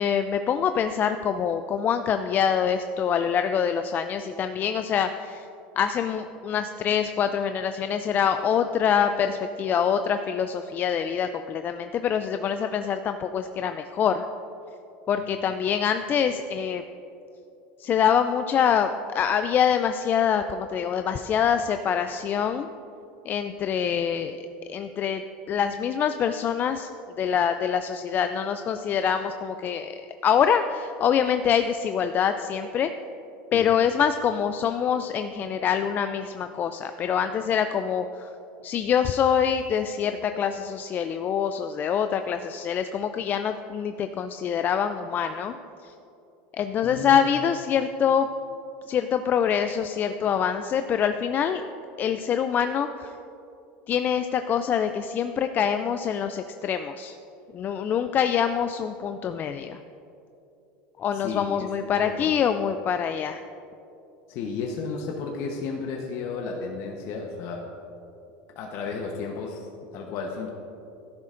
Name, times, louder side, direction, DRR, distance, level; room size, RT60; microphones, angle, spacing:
voice 1, 0.0-5.4 5.8-14.3 15.1-16.8 17.8-22.7 23.3-24.4 24.7-25.2 25.5-26.9 27.2-32.9 33.5-38.3 38.6-45.6 45.8-45.9 46.5-48.3 48.9-51.6 52.0-53.1 53.9-57.2 57.5-59.8 61.0-63.4, left 8 dB, 35° left, 8 dB, 0.3 m, -25 dB
voice 2, 46.8-47.2 61.2-62.3 64.3-67.6 68.6-70.5, left 4 dB, 55° left, 1 dB, 1.0 m, -33 dB
13.0 x 10.5 x 2.5 m, 2.7 s
supercardioid pair, 120°, 6 cm